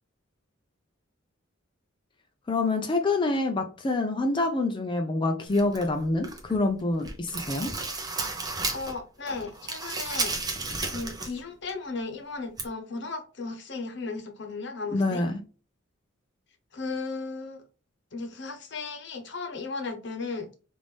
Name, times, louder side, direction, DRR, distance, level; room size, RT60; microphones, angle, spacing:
voice 1, 2.5-7.7 14.9-15.4, left 2 dB, 25° left, 0.4 m, -26 dB
sound 1, 5.5-6.6 6.9-9.0 9.3-11.4 11.7-11.8 12.6-12.7, right 3 dB, 20° right, 0.7 m, -33 dB
voice 2, 8.7-10.3 10.8-15.2 16.7-17.6 18.1-20.5, left 3 dB, 55° left, 0.9 m, -35 dB
3.5 x 2.6 x 3.2 m
head